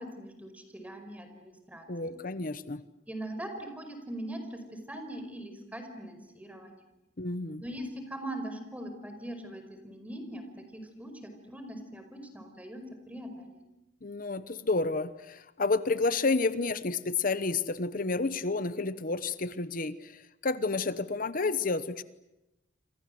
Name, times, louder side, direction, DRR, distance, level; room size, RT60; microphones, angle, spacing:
voice 1, 0.0-2.1 3.1-6.8 7.6-10.4 10.7-13.4, right 1 dB, 10° right, 6 dB, 5.1 m, -41 dB
voice 2, 1.9-2.8 7.2-7.6 14.0-22.0, left 3 dB, 50° left, 14 dB, 1.0 m, -30 dB
28.0 x 26.5 x 7.8 m, 0.94 s
head